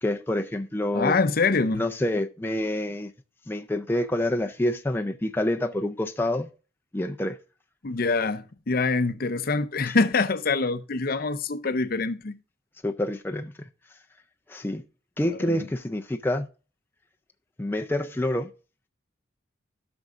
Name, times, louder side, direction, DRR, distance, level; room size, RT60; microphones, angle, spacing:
voice 1, 0.0-1.2 1.7-3.1 3.5-6.5 6.9-7.4 9.9-10.0 12.8-13.7 14.5-14.8 15.2-16.5 17.6-18.5, left 1 dB, 10° left, 0.4 m, -27 dB
voice 2, 0.9-1.8 7.8-12.3 15.3-15.7, left 4 dB, 50° left, 0.6 m, -25 dB
14.5 x 6.1 x 2.5 m
head